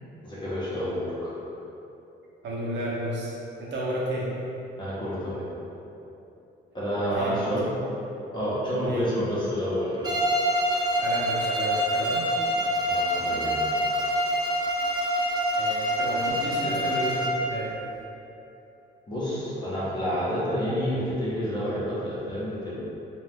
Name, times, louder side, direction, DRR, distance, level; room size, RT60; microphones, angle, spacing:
voice 1, 0.2-1.3 4.8-5.4 6.7-7.7 8.3-10.1 12.9-13.7 19.1-22.8, equal, 25° left, -9 dB, 0.7 m, -29 dB
voice 2, 2.4-3.3 3.6-4.3 7.1-7.7 8.8-9.0 11.0-12.3 15.6-17.7, right 1 dB, 65° right, -5 dB, 0.7 m, -32 dB
Bowed string instrument, 10.0-17.5, equal, 20° right, 0.6 m, -26 dB
2.4 x 2.2 x 3.4 m, 2.9 s
cardioid pair, 90°, 20 cm